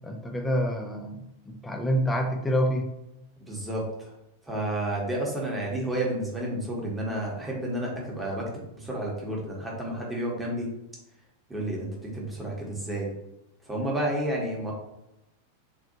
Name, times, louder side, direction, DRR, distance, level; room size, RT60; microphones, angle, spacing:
voice 1, 0.0-2.9, equal, 10° left, 3 dB, 0.5 m, -27 dB
voice 2, 3.5-4.1 4.4-8.5 8.7-10.7 11.5-13.1 13.6-14.7, right 1 dB, 10° right, -3 dB, 1.1 m, -31 dB
3.5 x 2.6 x 2.7 m, 0.87 s
figure-of-eight pair, 90°, 0 cm